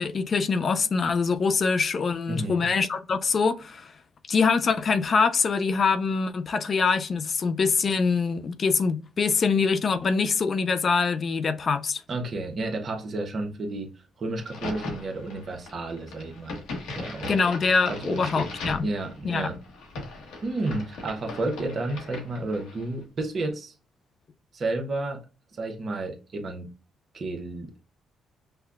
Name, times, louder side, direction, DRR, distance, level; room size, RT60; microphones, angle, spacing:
voice 1, 0.0-3.9 4.3-12.0 17.3-18.9 19.2-19.5, left 5 dB, 45° left, 0.3 m, -24 dB
voice 2, 2.3-2.7 12.1-13.9 14.2-16.6 16.9-17.4 17.9-18.5 18.8-19.6 20.4-23.7 24.5-25.2 25.5-26.7 27.1-27.8, right 2 dB, 45° right, 0.9 m, -31 dB
Crack, 14.4-22.9, left 2 dB, 90° left, 1.0 m, -39 dB
5.4 x 2.2 x 2.4 m
cardioid pair, 90°, 0 cm